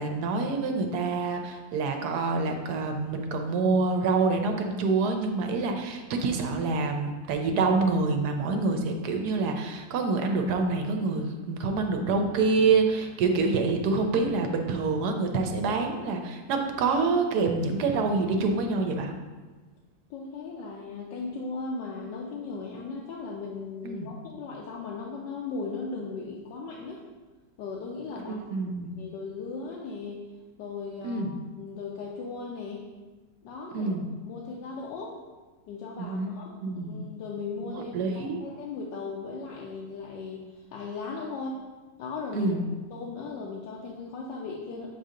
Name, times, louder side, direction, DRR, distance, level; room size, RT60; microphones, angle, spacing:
voice 1, 0.0-19.1 23.8-24.1 28.3-28.9 31.0-31.3 33.7-34.1 36.0-36.3 36.6-37.1 37.9-38.4 42.3-42.6, right 3 dB, 70° right, 4 dB, 1.1 m, -26 dB
voice 2, 20.1-27.0 27.6-28.6 28.9-30.3 30.6-31.3 31.6-32.9 33.4-34.0 34.2-35.2 35.7-36.5 36.8-41.6 42.0-42.5 42.9-44.9, left 4 dB, 75° left, -3 dB, 1.3 m, -37 dB
7.4 x 2.7 x 4.9 m, 1.3 s
omnidirectional pair, 2.1 m